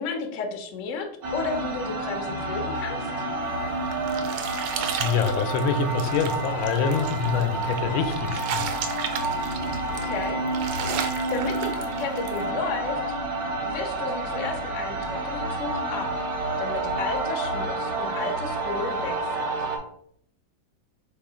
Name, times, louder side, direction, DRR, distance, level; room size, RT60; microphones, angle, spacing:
voice 1, 0.0-3.1 9.9-10.4 11.3-11.7 12.0-13.0 13.6-16.1 16.6-19.4, left 4 dB, 65° left, 0.8 m, -33 dB
sound 1, 1.2-19.8, right 2 dB, 55° right, 1.3 m, -29 dB
sound 2, 3.5-12.4, right 7 dB, 80° right, 1.4 m, -35 dB
voice 2, 5.0-8.7, left 6 dB, 85° left, 1.4 m, -25 dB
3.5 x 3.1 x 4.8 m
omnidirectional pair, 2.2 m